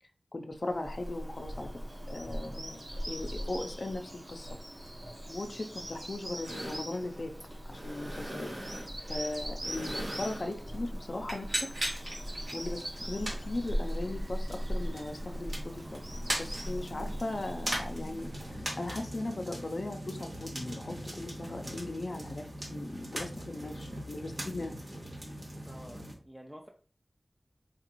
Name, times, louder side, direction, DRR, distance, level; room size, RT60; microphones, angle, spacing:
voice 1, 0.3-1.7 2.1-4.5 5.3-7.3 7.7-8.5 9.1-11.9 12.5-16.0 16.4-22.5 22.7-24.8, left 2 dB, 70° left, 4 dB, 0.5 m, -38 dB
Bird vocalization bird call bird song, 0.6-18.6, equal, 60° right, 1.3 m, -39 dB
sound 1, 6.4-26.1, right 1 dB, 75° right, 1.5 m, -40 dB
voice 2, 25.6-26.7, equal, 10° right, 2 dB, 0.5 m, -49 dB
4.7 x 2.5 x 3.0 m, 0.43 s
wide cardioid pair, 50°, 0 cm